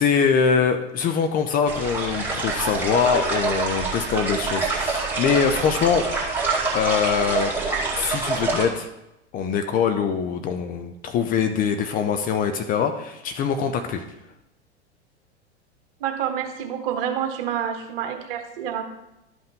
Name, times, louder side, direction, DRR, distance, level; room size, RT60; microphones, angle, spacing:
voice 1, 0.0-6.1 6.7-7.5 8.0-8.9 9.3-14.0, left 6 dB, 25° left, 7 dB, 0.5 m, -23 dB
sound 1, 1.7-8.7, right 3 dB, 5° right, 2.2 m, -26 dB
voice 2, 16.0-18.8, right 9 dB, 55° right, 5 dB, 1.4 m, -28 dB
12.0 x 5.4 x 3.7 m, 0.89 s
figure-of-eight pair, 90°, 35 cm